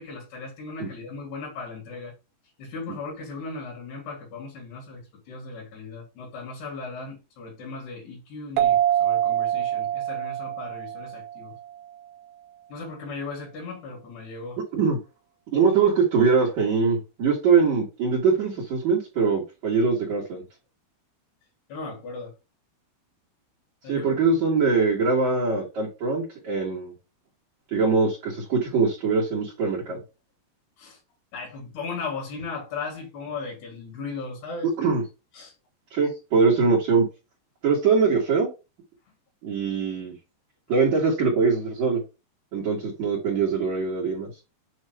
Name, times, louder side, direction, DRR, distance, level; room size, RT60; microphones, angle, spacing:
voice 1, 0.0-2.1 2.6-11.6 12.7-14.6 21.7-22.3 23.8-24.1 30.8-31.0 31.3-34.7 35.3-35.5, left 4 dB, 65° left, 4.6 m, -37 dB
sound 1, 8.6-11.9, right 11 dB, 85° right, 3.0 m, -25 dB
voice 2, 15.5-20.4 23.9-26.9 27.7-30.0 34.8-35.0 35.9-37.1 37.6-38.5 39.4-40.1 40.7-42.0 42.5-44.3, right 5 dB, 50° right, 2.5 m, -22 dB
9.0 x 3.0 x 4.4 m
omnidirectional pair, 5.2 m